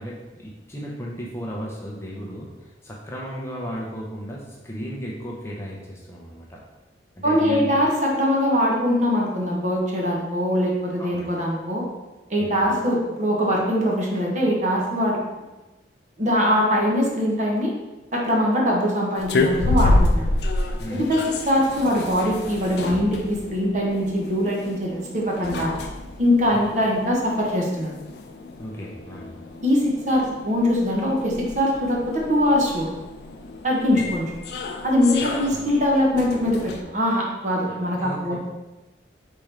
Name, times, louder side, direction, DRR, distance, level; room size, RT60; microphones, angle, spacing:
voice 1, 0.0-6.6 7.2-7.7 11.0-11.2 12.4-12.6 20.8-21.1 26.5-26.6 28.6-29.3 34.0-34.1 35.2-35.6 37.7-38.4, equal, 15° left, -4 dB, 0.6 m, -35 dB
voice 2, 7.2-11.8 12.3-15.2 16.2-17.7 18.1-20.3 20.9-25.7 26.2-27.9 29.6-32.9 33.6-34.2 34.8-38.4, equal, 40° right, -2 dB, 0.8 m, -22 dB
sound 1, 19.2-36.8, left 2 dB, 65° left, 0.4 m, -29 dB
4.2 x 3.6 x 3.2 m, 1.1 s
head